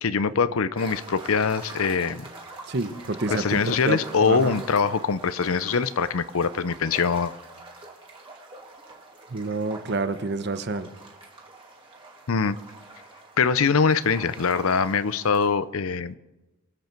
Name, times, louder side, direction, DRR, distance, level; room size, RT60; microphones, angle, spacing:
voice 1, 0.0-2.2 3.3-7.3 12.3-12.6 13.4-16.2, left 5 dB, 80° left, 16 dB, 0.6 m, -23 dB
sound 1, 0.8-15.5, right 2 dB, 25° right, 2.4 m, -44 dB
voice 2, 2.7-4.6 9.3-10.9, right 3 dB, 50° right, 12 dB, 0.8 m, -29 dB
22.5 x 8.2 x 4.5 m, 1.0 s
head